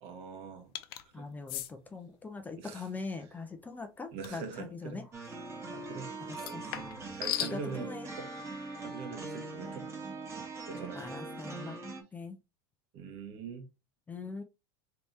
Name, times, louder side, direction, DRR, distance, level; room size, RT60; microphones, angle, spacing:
voice 1, 0.0-0.7 1.0-1.4 2.6-2.8 4.1-5.0 5.7-6.1 6.4-8.3 8.8-9.9 10.7-11.1 11.6-11.7 12.9-13.7, right 5 dB, 50° right, 1.5 m, -43 dB
sound 1, 0.8-1.0 1.5-1.7 4.2-4.5 6.3-7.6, left 13 dB, 70° left, 0.7 m, -36 dB
voice 2, 1.1-5.0 6.3-6.7 7.5-8.1 10.9-11.8 12.1-12.4 14.1-14.4, left 3 dB, 15° left, 0.6 m, -42 dB
sound 2, 5.1-12.0, right 3 dB, 20° right, 1.4 m, -42 dB
3.4 x 3.1 x 4.1 m
supercardioid pair, 130°, 13 cm